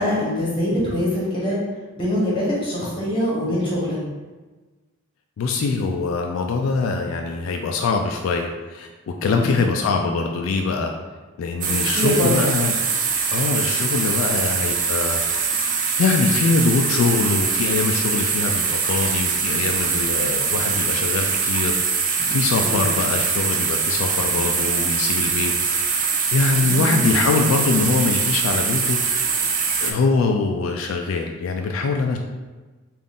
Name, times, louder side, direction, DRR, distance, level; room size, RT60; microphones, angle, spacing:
voice 1, 0.0-1.6 2.0-4.0 9.2-9.7 11.9-12.3 22.6-22.9 26.5-27.2, left 1 dB, 25° left, -6 dB, 1.2 m, -24 dB
voice 2, 5.4-10.9 11.4-12.7 13.3-15.6 16.0-21.8 22.3-25.5 25.8-29.0 29.8-32.2, left 4 dB, 80° left, 3 dB, 0.3 m, -23 dB
sound 1, 11.6-29.9, right 5 dB, 40° right, 0.4 m, -23 dB
3.6 x 2.4 x 3.7 m, 1.3 s
head